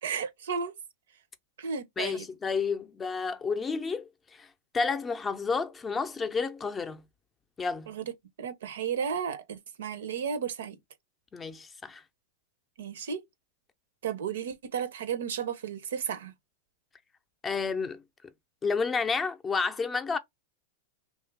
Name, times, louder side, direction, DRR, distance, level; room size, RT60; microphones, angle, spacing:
voice 1, 0.0-0.7 1.6-2.2 7.9-8.0 8.4-10.8 12.8-13.2 14.0-16.3, right 7 dB, 80° right, 0.6 m, -33 dB
voice 2, 2.0-4.5 4.7-7.1 7.6-7.9 11.3-12.0 17.4-18.0 18.6-20.2, left 4 dB, 20° left, 0.5 m, -30 dB
2.8 x 2.3 x 3.3 m
hypercardioid pair, 115°, 0 cm